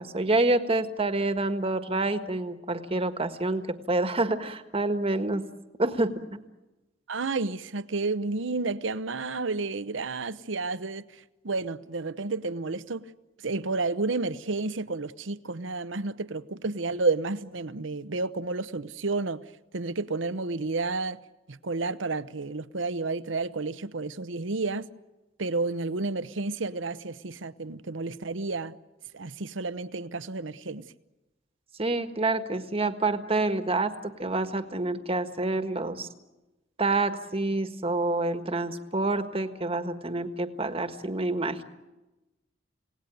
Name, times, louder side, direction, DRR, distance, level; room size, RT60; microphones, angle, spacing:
voice 1, 0.0-5.5 5.8-6.2 31.8-36.1 36.8-41.6, right 2 dB, 30° right, 1.5 m, -27 dB
voice 2, 7.1-13.1 13.4-19.4 19.7-21.2 21.5-24.9 25.4-28.7 29.1-30.9, right 3 dB, 75° right, 0.9 m, -31 dB
28.5 x 18.0 x 9.3 m
head